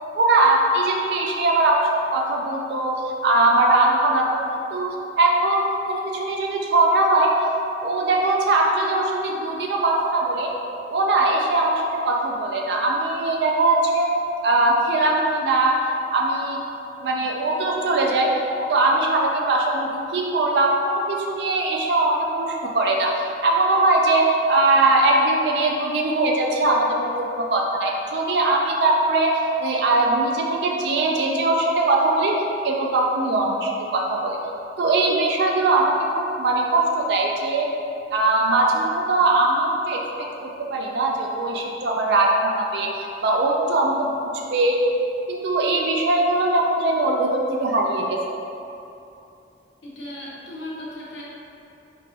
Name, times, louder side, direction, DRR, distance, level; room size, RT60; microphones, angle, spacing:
voice 1, 0.2-4.4 4.7-4.9 5.2-7.3 7.8-10.5 10.9-14.1 14.4-15.9 16.1-16.6 17.0-18.3 18.7-34.4 34.8-37.7 38.1-44.8 45.3-48.2, right 2 dB, 70° right, 0 dB, 0.4 m, -21 dB
voice 2, 49.8-51.2, left 1 dB, 80° left, -6 dB, 0.9 m, -36 dB
4.0 x 3.3 x 2.7 m, 2.8 s
head